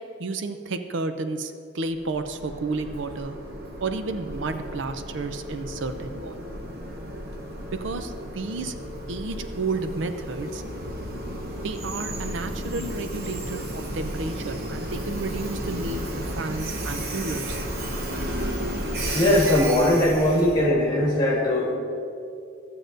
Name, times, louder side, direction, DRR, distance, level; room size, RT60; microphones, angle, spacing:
voice 1, 0.2-3.4 3.8-6.4 7.7-8.7 9.1-10.6 11.6-17.6, right 3 dB, 70° right, 8 dB, 0.5 m, -31 dB
Train, 1.9-20.7, equal, 50° right, 0.9 m, -33 dB
voice 2, 19.1-21.8, left 1 dB, 25° left, -3 dB, 1.7 m, -20 dB
15.0 x 7.6 x 2.6 m, 2.5 s
head